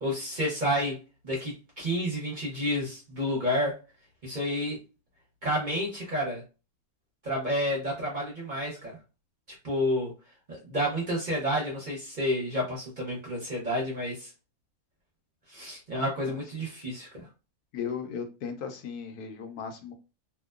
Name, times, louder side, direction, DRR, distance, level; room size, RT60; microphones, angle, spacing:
voice 1, 0.0-1.0 1.2-3.8 4.2-4.8 5.4-6.4 7.2-9.0 9.6-10.1 10.6-14.3 15.5-17.3, equal, 40° right, -4 dB, 0.7 m, -30 dB
voice 2, 17.7-19.9, left 6 dB, 80° left, 6 dB, 1.1 m, -36 dB
2.9 x 2.1 x 2.3 m, 0.30 s
omnidirectional pair, 1.6 m